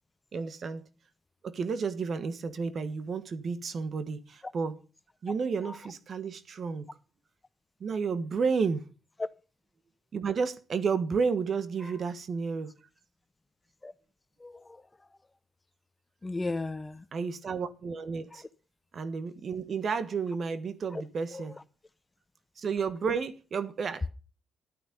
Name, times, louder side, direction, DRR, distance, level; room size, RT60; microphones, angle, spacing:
voice 1, 0.3-0.9 1.4-4.8 5.2-6.9 7.8-8.9 10.1-12.7 17.1-18.4 18.9-21.6 22.6-24.1, right 5 dB, 55° right, 1.4 m, -31 dB
voice 2, 14.4-14.8 16.2-17.0 20.9-21.0 21.3-21.4, left 2 dB, 25° left, 0.8 m, -35 dB
11.0 x 9.1 x 5.2 m
supercardioid pair, 55°, 0 cm